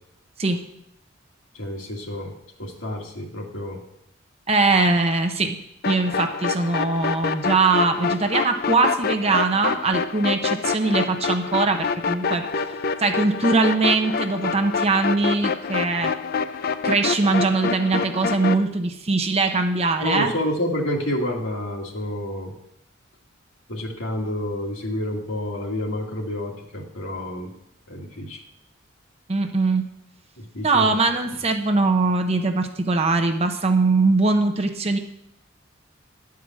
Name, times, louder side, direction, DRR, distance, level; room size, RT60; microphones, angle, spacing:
voice 1, 1.5-2.3 2.6-3.8 20.0-22.5 23.7-27.5 27.9-28.4 30.5-30.9, left 1 dB, 80° left, -1 dB, 1.9 m, -29 dB
voice 2, 4.5-5.6 5.8-12.5 13.0-16.1 16.8-20.3 29.3-29.9 30.6-35.0, right 3 dB, 30° right, 5 dB, 0.7 m, -21 dB
sound 1, 5.8-18.6, left 5 dB, 50° left, 0.4 m, -27 dB
10.5 x 4.8 x 7.4 m, 0.80 s
head